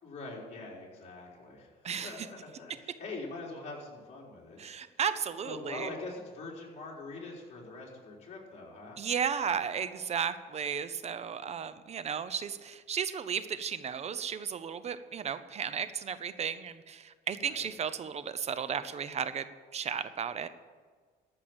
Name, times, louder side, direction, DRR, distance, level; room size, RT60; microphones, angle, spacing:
voice 1, 0.0-4.9 5.4-9.0 17.4-17.7, left 3 dB, 40° left, -3 dB, 4.1 m, -44 dB
voice 2, 4.6-5.9 9.0-20.5, right 7 dB, 40° right, 13 dB, 0.8 m, -34 dB
13.5 x 6.0 x 8.8 m, 1.5 s
cardioid pair, 110°, 17 cm